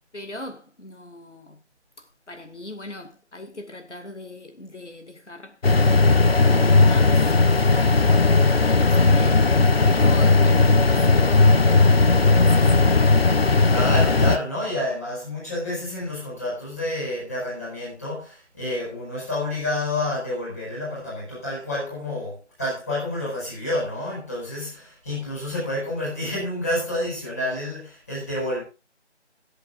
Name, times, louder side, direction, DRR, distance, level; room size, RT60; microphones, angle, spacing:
voice 1, 0.1-1.6 2.0-5.6 5.9-9.5 9.8-11.8 12.2-13.3, left 1 dB, 85° left, 2.2 m, -39 dB
sound 1, 5.6-14.4, left 3 dB, 60° left, 0.7 m, -17 dB
voice 2, 13.7-28.6, left 1 dB, 15° left, 4.5 m, -29 dB
23.0 x 8.0 x 2.5 m
figure-of-eight pair, 170°, 35 cm